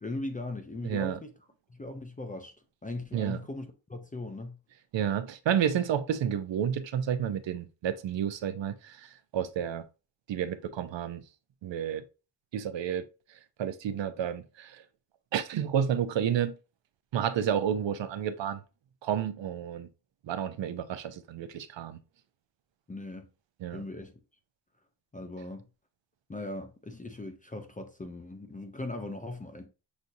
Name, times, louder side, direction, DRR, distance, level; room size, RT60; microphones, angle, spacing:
voice 1, 0.0-1.3 1.7-2.5 2.8-4.6 22.9-23.3 23.7-24.1 25.1-25.7 26.3-29.7, left 2 dB, 20° left, 0.4 m, -39 dB
voice 2, 0.8-1.2 3.1-3.4 4.9-9.8 10.3-11.2 11.6-12.0 12.5-13.1 13.6-14.8 15.3-16.5 17.1-18.6 19.0-19.9 20.2-22.0 23.6-23.8, right 9 dB, 75° right, 0.5 m, -30 dB
6.0 x 2.6 x 2.6 m
wide cardioid pair, 140°, 46 cm